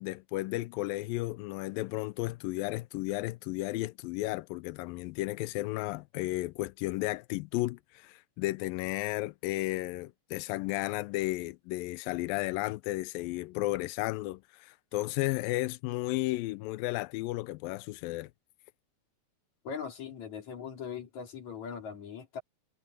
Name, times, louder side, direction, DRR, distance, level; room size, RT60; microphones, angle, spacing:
voice 1, 0.0-18.3, left 19 dB, 85° left, 2.0 m, -33 dB
voice 2, 19.6-22.4, left 6 dB, 45° left, 4.3 m, -40 dB
omnidirectional pair, 4.6 m